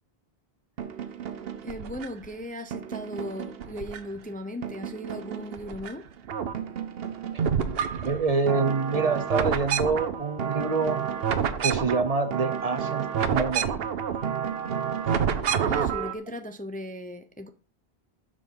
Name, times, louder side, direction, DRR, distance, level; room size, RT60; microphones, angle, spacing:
sound 1, 0.8-2.3 2.7-4.3 4.6-5.9 6.2-16.1, right 7 dB, 70° right, 0.9 m, -29 dB
voice 1, 1.6-6.0 15.6-17.5, left 1 dB, 10° left, 0.5 m, -37 dB
voice 2, 8.0-11.1 11.6-13.7, right 4 dB, 40° right, 0.7 m, -26 dB
12.0 x 5.0 x 3.9 m
omnidirectional pair, 1.1 m